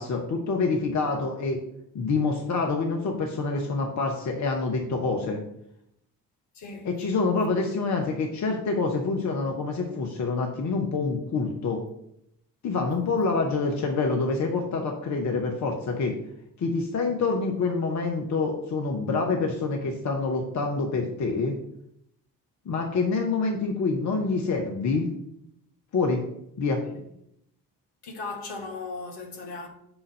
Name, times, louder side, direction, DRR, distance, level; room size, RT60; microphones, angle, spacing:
voice 1, 0.0-1.6 1.9-5.4 6.8-11.8 12.6-16.1 16.6-21.5 22.7-25.1 25.9-26.2 26.6-26.8, left 4 dB, 35° left, 1.0 m, -26 dB
voice 2, 6.5-6.9 26.8-27.1 28.0-29.7, left 3 dB, 55° left, 1.5 m, -37 dB
6.0 x 3.8 x 5.3 m
figure-of-eight pair, 45°, 48 cm